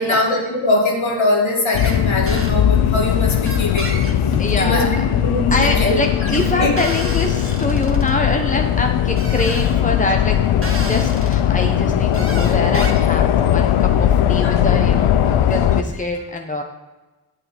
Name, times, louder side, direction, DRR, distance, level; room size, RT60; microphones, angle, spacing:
voice 1, 0.0-3.9 4.5-6.7 14.4-14.6, left 2 dB, 70° left, 0 dB, 2.3 m, -21 dB
sound 1, 1.7-15.8, left 10 dB, 90° left, 0.6 m, -18 dB
sound 2, 1.7-2.0 2.3-2.5 3.5-4.9 6.2-8.1 9.2-9.8 10.6-11.4 12.1-13.2, right 2 dB, 25° right, 1.7 m, -32 dB
voice 2, 4.4-4.9 5.5-10.4 10.7-16.6, left 2 dB, 15° left, 3 dB, 1.1 m, -24 dB
8.6 x 8.5 x 5.1 m, 1.2 s
cardioid pair, 40°, 49 cm